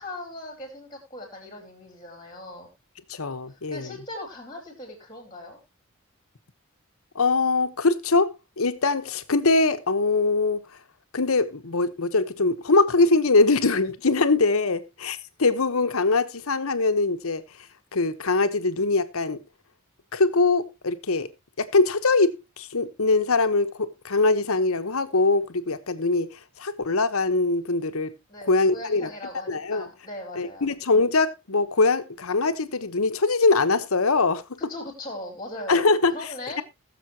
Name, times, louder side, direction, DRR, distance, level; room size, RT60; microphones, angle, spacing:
voice 1, 0.0-2.7 3.5-5.6 28.3-30.7 34.7-35.9 36.1-36.6, left 1 dB, 20° left, 4.4 m, -39 dB
voice 2, 3.1-3.9 7.1-10.6 11.1-17.4 17.9-19.4 20.1-21.3 21.6-28.1 28.5-29.1 29.5-29.9 30.4-34.4 35.7-36.1, left 3 dB, 85° left, 1.1 m, -22 dB
20.5 x 7.0 x 2.9 m
head